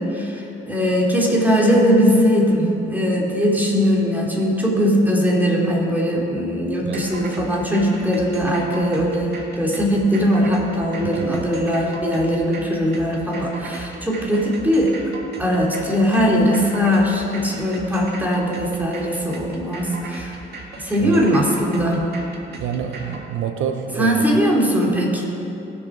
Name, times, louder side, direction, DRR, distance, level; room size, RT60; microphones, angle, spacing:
voice 1, 0.0-15.0 15.4-20.4 20.8-22.1 24.0-25.3, equal, 10° right, -3 dB, 2.9 m, -20 dB
sound 1, 6.9-23.2, right 3 dB, 55° right, 2.1 m, -37 dB
voice 2, 11.0-11.5 21.0-21.2 22.6-24.4, right 8 dB, 75° right, 6 dB, 0.8 m, -27 dB
20.0 x 7.0 x 5.0 m, 2.9 s
cardioid pair, 90°, 20 cm